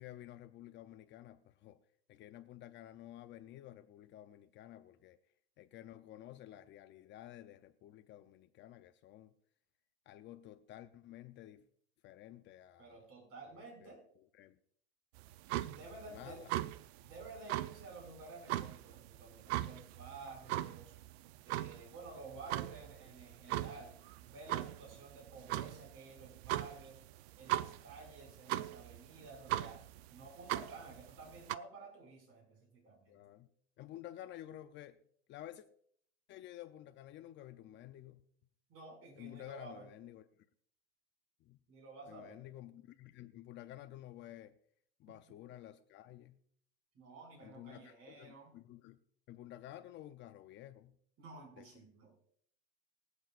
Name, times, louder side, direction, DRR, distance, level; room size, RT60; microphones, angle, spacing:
voice 1, 0.0-1.8 2.1-5.2 5.6-9.3 10.1-11.6 12.0-13.0 13.8-14.6 16.1-16.5 33.1-33.5 33.8-35.0 35.3-35.7 36.3-38.2 39.2-40.2 41.4-41.6 42.1-44.6 45.0-46.4 47.4-49.0 49.3-51.0 51.6-51.7, left 13 dB, 35° left, 9 dB, 0.6 m, -52 dB
voice 2, 12.8-14.0 15.7-16.4 17.0-20.9 21.4-27.0 27.4-29.8 30.1-33.2 38.7-39.9 41.7-42.4 46.9-48.6 51.2-52.1, right 3 dB, 45° right, 1 dB, 5.9 m, -52 dB
sound 1, 15.2-31.6, right 15 dB, 65° right, 0.6 m, -40 dB
24.5 x 8.3 x 2.5 m, 0.63 s
supercardioid pair, 125°, 34 cm